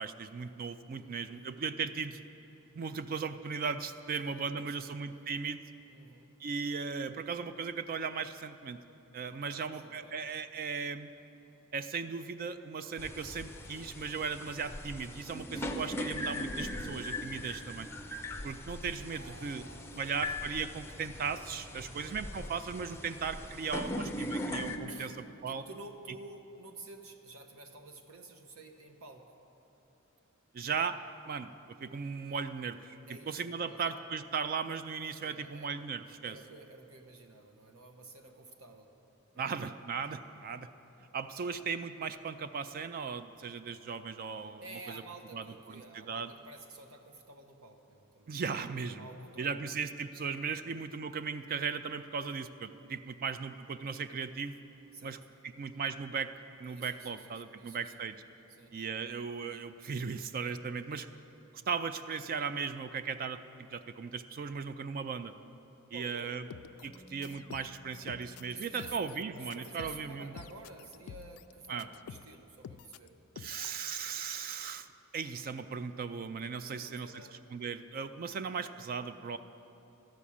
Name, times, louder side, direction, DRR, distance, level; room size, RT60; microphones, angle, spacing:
voice 1, 0.0-2.2 2.7-5.6 6.4-8.8 9.1-11.1 11.7-17.9 18.4-19.6 20.0-25.1 25.4-25.6 30.5-31.0 31.3-31.5 31.8-36.4 39.4-40.7 41.1-45.0 45.3-46.3 48.3-49.1 49.4-54.6 55.0-55.2 55.6-56.3 56.6-58.2 58.7-61.1 61.7-63.4 63.7-65.3 65.9-66.5 66.8-70.3 71.7-71.9 73.4-74.9 75.1-77.2 77.5-79.4, right 5 dB, 40° right, 11 dB, 0.3 m, -37 dB
voice 2, 1.0-1.4 4.2-5.1 5.9-6.4 9.2-10.2 19.1-20.2 21.7-22.6 24.9-25.2 25.5-29.4 33.1-33.9 35.2-35.7 36.2-38.9 39.3-39.7 44.6-48.3 49.0-49.6 50.5-50.7 54.9-55.2 56.7-57.9 58.5-58.8 65.9-66.4 68.5-69.0 69.4-73.2 76.6-77.4, right 3 dB, 75° right, 4 dB, 1.0 m, -51 dB
sound 1, 13.0-24.8, left 1 dB, 10° left, 0.5 m, -40 dB
sound 2, 66.5-72.4 72.6-73.1 73.4-73.8, left 7 dB, 80° left, 0.3 m, -49 dB
Wind instrument woodwind instrument, 66.9-72.3, left 1 dB, 10° right, 0.9 m, -59 dB
13.0 x 6.1 x 8.5 m, 3.0 s
head